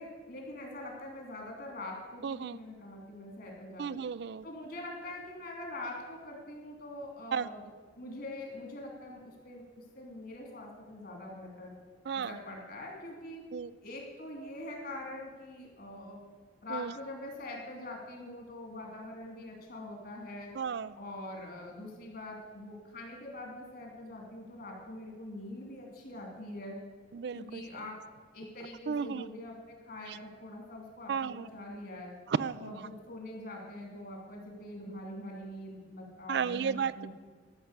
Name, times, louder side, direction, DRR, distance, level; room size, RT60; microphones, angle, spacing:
voice 1, 0.0-4.0 4.4-7.6 8.0-11.7 12.1-13.4 13.8-16.2 16.6-20.5 21.0-26.8 27.3-28.0 28.3-32.1 32.6-37.1, left 1 dB, 55° left, 1 dB, 3.0 m, -44 dB
voice 2, 2.2-2.6 3.8-4.4 7.3-7.5 12.1-12.4 13.5-13.7 16.7-16.9 20.6-21.0 27.1-27.6 28.9-29.3 30.1-30.2 31.1-31.5 32.3-32.9 36.3-37.1, right 6 dB, 65° right, 16 dB, 0.4 m, -33 dB
13.0 x 5.9 x 8.1 m, 1.5 s
head